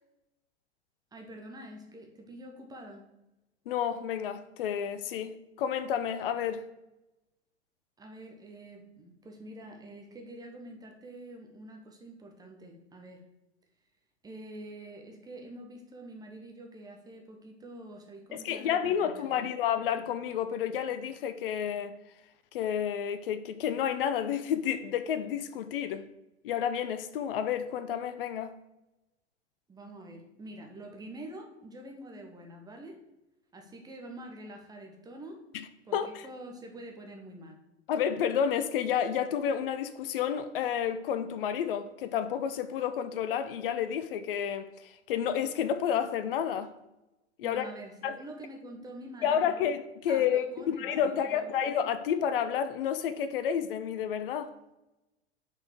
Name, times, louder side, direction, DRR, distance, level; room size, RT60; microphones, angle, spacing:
voice 1, 1.1-3.1 8.0-13.2 14.2-19.5 29.7-33.0 33.5-35.4 35.8-37.6 47.4-49.7 50.1-51.6, right 1 dB, 10° right, 1.1 m, -46 dB
voice 2, 3.7-6.7 18.3-22.0 22.5-26.1 26.4-28.5 35.5-35.6 35.9-36.3 37.9-46.7 47.4-47.7 48.0-48.2 49.2-54.5, left 8 dB, 50° left, 0.6 m, -30 dB
6.1 x 4.6 x 6.4 m
figure-of-eight pair, 95°, 35 cm